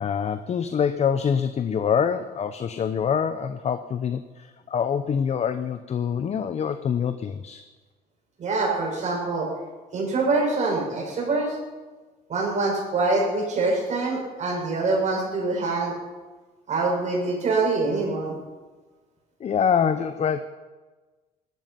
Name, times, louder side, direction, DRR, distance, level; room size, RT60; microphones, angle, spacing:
voice 1, 0.0-7.6 19.4-20.4, left 7 dB, 40° left, 11 dB, 0.8 m, -25 dB
voice 2, 8.4-9.5 9.9-11.6 12.3-15.9 16.7-18.3, right 3 dB, 45° right, -1 dB, 6.5 m, -25 dB
17.0 x 13.0 x 5.9 m, 1.3 s
cardioid pair, 110°, 17 cm